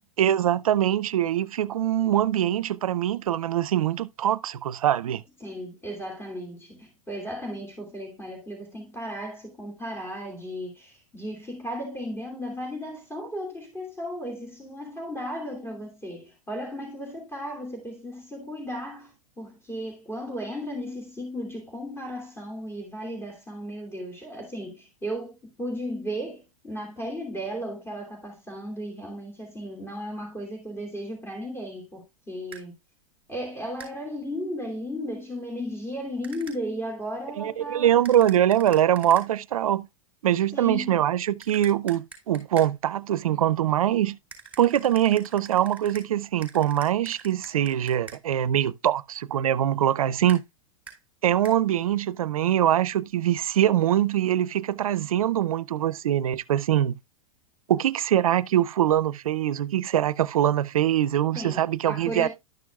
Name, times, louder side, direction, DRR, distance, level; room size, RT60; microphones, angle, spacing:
voice 1, 0.2-5.2 37.4-39.9 40.2-44.2 44.6-50.4 51.2-56.9 57.7-62.3, right 11 dB, 85° right, 0.5 m, -23 dB
voice 2, 5.4-32.8 33.3-37.9 40.5-41.0 61.3-62.3, equal, 15° left, 2.8 m, -35 dB
sound 1, 32.5-32.6 33.8-33.9 36.2-36.6 38.0-39.3 41.4-42.7 44.3-46.1 46.4-48.2 50.3-50.4 50.9-51.0 51.4-51.6, right 6 dB, 10° right, 4.4 m, -45 dB
12.0 x 6.2 x 2.3 m
hypercardioid pair, 110°, 18 cm